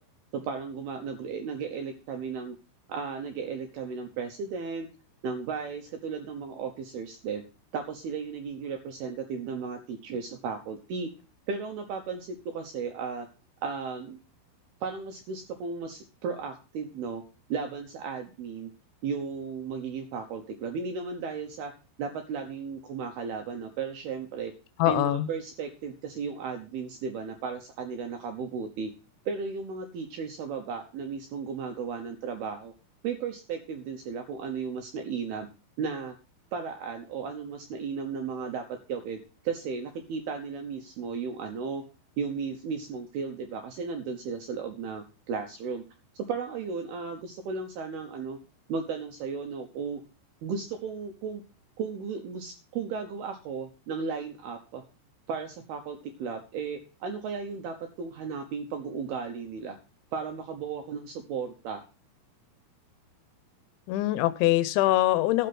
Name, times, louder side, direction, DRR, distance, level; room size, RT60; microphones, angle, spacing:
voice 1, 0.3-2.6 2.9-4.9 5.2-7.4 7.7-11.1 11.5-13.3 13.6-14.2 14.8-17.2 17.5-18.7 19.0-21.7 22.0-24.5 24.9-28.9 29.3-32.7 33.0-35.5 35.8-36.2 36.5-41.8 42.2-45.8 46.3-48.4 48.7-50.0 50.4-51.4 51.8-54.8 55.3-59.8 60.1-61.8, right 5 dB, 75° right, 5 dB, 2.4 m, -35 dB
voice 2, 24.8-25.3 63.9-65.5, left 15 dB, 80° left, 14 dB, 2.8 m, -23 dB
13.0 x 6.7 x 6.0 m, 0.33 s
omnidirectional pair, 5.9 m